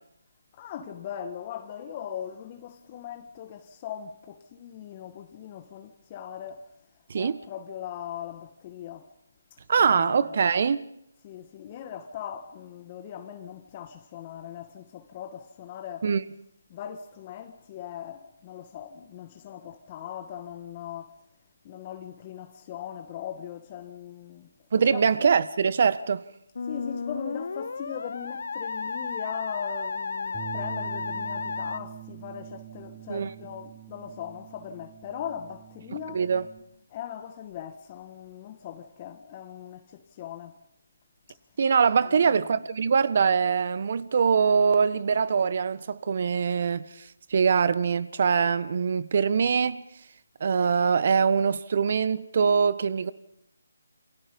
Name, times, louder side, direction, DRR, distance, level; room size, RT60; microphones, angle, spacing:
voice 1, 0.5-6.7 7.1-9.1 9.5-10.5 11.2-16.0 16.7-21.2 21.6-24.5 24.9-25.1 26.7-36.2 36.9-40.6 41.3-41.4 42.0-42.3 42.6-42.7, left 9 dB, 30° left, 1.6 m, -40 dB
voice 2, 9.7-10.8 16.0-16.2 24.7-26.2 33.1-33.3 36.1-36.4 41.6-46.8 47.3-49.8 50.4-53.1, right 6 dB, 50° right, 1.5 m, -23 dB
Musical instrument, 26.6-31.8, left 5 dB, 60° left, 1.0 m, -33 dB
Bass guitar, 30.3-36.6, right 15 dB, 20° right, 5.3 m, -44 dB
28.5 x 28.5 x 5.4 m
figure-of-eight pair, 155°, 0 cm